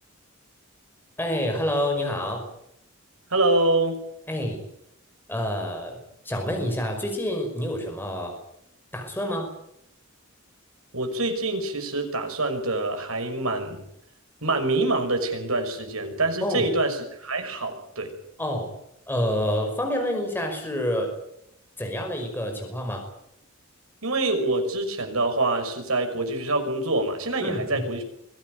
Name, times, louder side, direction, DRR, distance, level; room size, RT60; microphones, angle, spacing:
voice 1, 1.2-2.5 4.3-4.6 5.3-6.0 6.3-8.4 8.9-9.6 16.4-16.7 18.4-18.8 19.1-21.1 21.8-23.1 27.4-27.9, left 1 dB, 10° left, 3 dB, 5.3 m, -28 dB
voice 2, 3.3-4.0 10.9-13.8 14.4-18.1 24.0-28.0, right 2 dB, 80° right, 5 dB, 6.2 m, -25 dB
24.0 x 16.5 x 9.4 m, 0.77 s
head